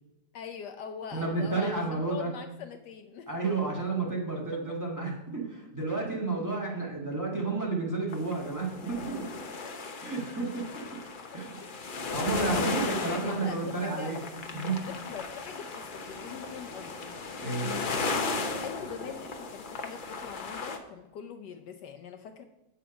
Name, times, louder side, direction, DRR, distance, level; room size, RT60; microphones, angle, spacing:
voice 1, 0.3-3.3 9.6-9.7 10.0-10.1 12.4-14.3 14.9-17.0 17.6-18.0 18.3-22.4, left 7 dB, 75° left, 7 dB, 1.2 m, -43 dB
voice 2, 1.1-2.3 3.3-9.2 10.0-10.6 11.3-11.5 12.1-14.2 14.5-14.8 17.4-17.7, right 3 dB, 10° right, -3 dB, 1.7 m, -31 dB
sound 1, 8.1-20.8, left 3 dB, 55° left, 0.5 m, -36 dB
8.4 x 5.7 x 5.1 m, 0.97 s
omnidirectional pair, 1.9 m